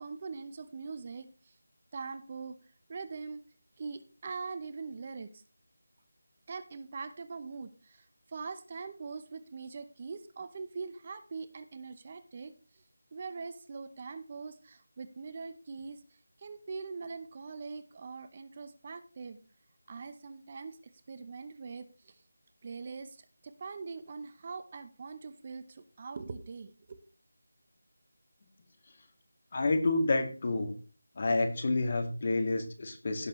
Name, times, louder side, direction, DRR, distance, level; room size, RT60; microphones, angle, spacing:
voice 1, 0.0-1.6 1.9-2.6 2.9-3.4 3.8-5.4 6.5-12.8 13.1-16.0 16.4-19.4 19.9-20.8 21.1-22.2 22.6-27.0, right 4 dB, 30° right, 11 dB, 0.8 m, -42 dB
voice 2, 29.5-30.8 31.2-33.3, left 2 dB, 40° left, 6 dB, 2.1 m, -29 dB
16.5 x 6.7 x 3.2 m, 0.36 s
figure-of-eight pair, 170°, 0 cm